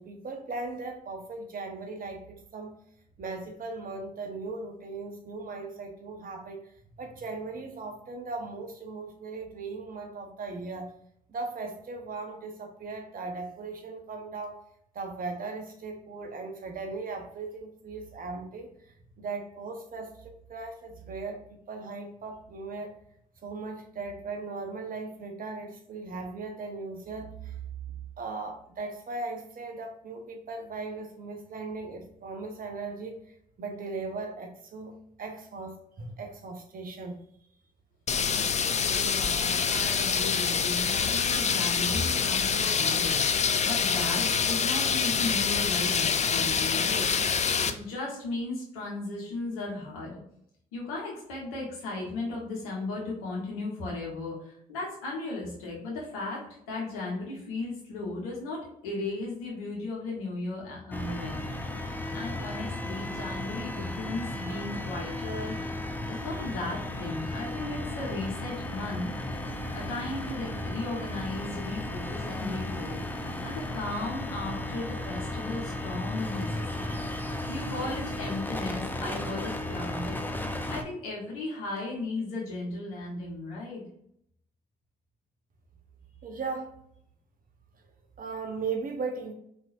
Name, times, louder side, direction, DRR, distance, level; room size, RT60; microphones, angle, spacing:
voice 1, 0.0-2.8 3.2-6.7 7.0-10.9 11.3-14.6 14.9-18.7 19.2-23.0 23.4-27.6 28.2-33.3 33.6-37.2 86.2-86.7 88.2-89.3, right 3 dB, 50° right, 3 dB, 1.2 m, -38 dB
sound 1, 38.1-47.7, left 6 dB, 40° left, 0.6 m, -26 dB
voice 2, 38.9-43.2 43.6-47.0 47.6-50.2 50.7-61.6 62.1-65.6 66.1-69.1 69.7-73.0 73.4-77.0 77.5-80.3 80.7-83.8, left 2 dB, 85° left, -3 dB, 1.5 m, -36 dB
sound 2, 60.9-80.8, left 1 dB, 10° left, 0.8 m, -35 dB
4.8 x 3.8 x 2.6 m, 0.70 s
hypercardioid pair, 45°, 18 cm